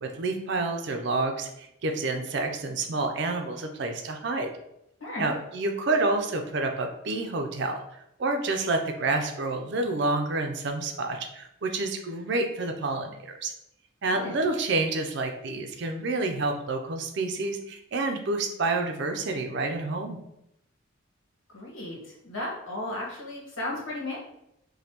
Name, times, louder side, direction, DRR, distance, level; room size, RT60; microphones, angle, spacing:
voice 1, 0.0-4.5 5.2-7.7 8.2-13.2 13.4-13.5 14.0-20.2, right 3 dB, 55° right, 5 dB, 0.4 m, -28 dB
voice 2, 5.0-5.3 14.1-14.3 21.5-24.2, left 1 dB, 70° left, -4 dB, 1.3 m, -35 dB
5.1 x 2.1 x 2.9 m, 0.81 s
head